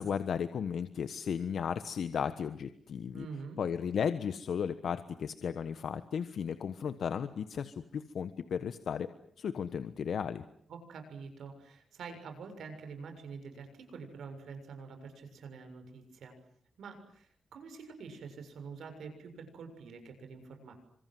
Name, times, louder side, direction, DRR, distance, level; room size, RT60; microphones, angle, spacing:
voice 1, 0.0-3.3 3.6-9.1 9.4-10.4, left 7 dB, 70° left, 11 dB, 1.3 m, -35 dB
voice 2, 3.1-3.6 10.7-16.4 16.8-20.8, right 5 dB, 85° right, 6 dB, 6.9 m, -46 dB
29.0 x 26.0 x 7.8 m, 0.65 s
wide cardioid pair, 135°, 0 cm